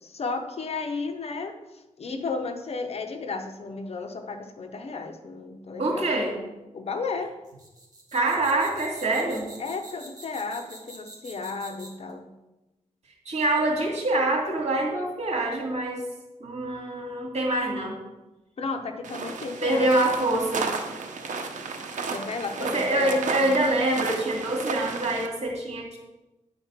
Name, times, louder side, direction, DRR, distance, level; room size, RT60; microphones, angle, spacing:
voice 1, 0.0-6.1 6.7-7.4 9.6-12.3 18.6-20.2 22.1-23.5, left 4 dB, 55° left, 5 dB, 0.8 m, -34 dB
voice 2, 5.8-6.4 8.1-9.5 13.3-16.1 16.4-18.0 19.6-20.7 22.6-26.0, right 2 dB, 60° right, -1 dB, 2.1 m, -25 dB
sound 1, 7.4-12.1, right 2 dB, 30° right, 1.7 m, -46 dB
sound 2, 19.0-25.3, right 4 dB, 85° right, 0.8 m, -33 dB
8.9 x 4.0 x 5.9 m, 1.0 s
wide cardioid pair, 140°, 12 cm